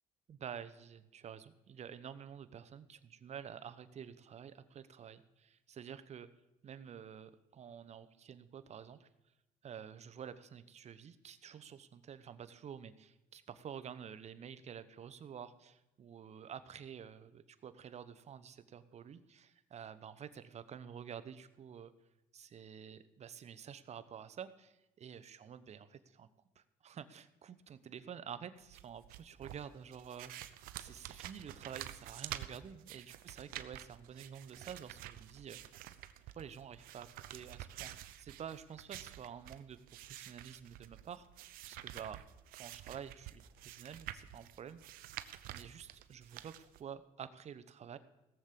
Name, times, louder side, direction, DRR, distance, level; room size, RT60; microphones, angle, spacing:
voice 1, 0.3-6.3 6.6-9.1 9.6-21.9 22.3-26.3 26.6-35.6 36.3-42.2 42.6-44.8 45.5-48.0, right 8 dB, 50° right, 13 dB, 0.9 m, -49 dB
sound 1, 28.6-46.8, right 13 dB, 85° right, 0.7 m, -49 dB
17.5 x 7.4 x 6.8 m, 0.93 s
cardioid pair, 85°, 15 cm